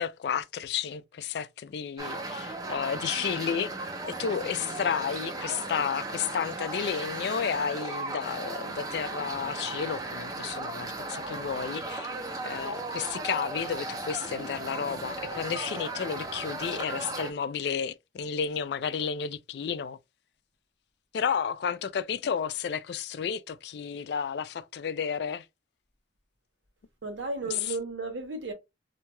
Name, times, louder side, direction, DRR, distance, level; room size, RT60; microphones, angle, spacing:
voice 1, 0.0-3.7 4.2-12.1 12.4-20.0 21.1-25.4, left 7 dB, 65° left, 0.3 m, -32 dB
sound 1, 2.0-17.3, right 2 dB, 20° right, 0.4 m, -36 dB
voice 2, 27.0-28.5, right 3 dB, 85° right, 0.9 m, -34 dB
2.7 x 2.2 x 2.9 m
head